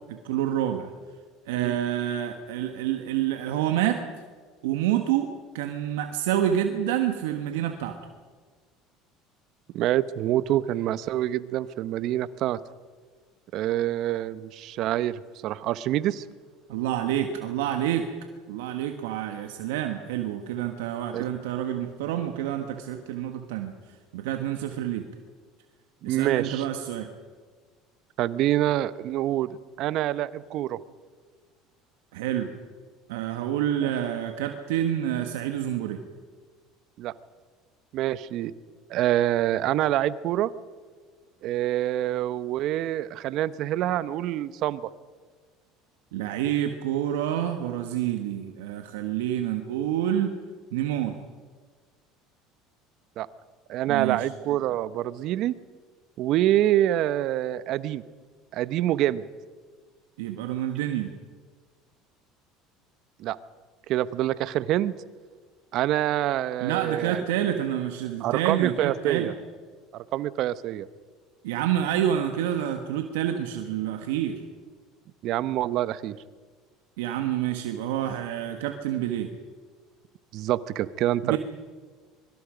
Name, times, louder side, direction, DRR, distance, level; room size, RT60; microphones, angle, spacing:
voice 1, 0.1-0.9 1.5-4.0 4.6-5.3 5.5-8.0 16.7-18.1 18.5-23.7 24.1-25.0 26.0-27.1 32.1-32.5 33.1-36.0 46.1-50.3 50.7-51.1 53.9-54.3 60.2-61.1 66.6-69.3 71.4-74.3 77.0-79.3 81.2-81.4, right 11 dB, 80° right, 5 dB, 1.6 m, -28 dB
voice 2, 9.7-12.6 13.5-16.2 21.1-21.2 26.0-26.6 28.2-30.8 33.8-33.9 37.0-37.1 37.9-38.5 38.9-40.5 41.4-44.9 53.2-53.3 53.7-55.5 56.2-58.0 58.5-59.2 63.2-63.4 63.9-64.9 65.7-67.3 68.2-69.3 69.9-70.9 75.2-76.1 80.3-81.4, right 13 dB, 60° right, 16 dB, 0.9 m, -26 dB
24.5 x 24.0 x 5.2 m, 1.5 s
hypercardioid pair, 75°, 0 cm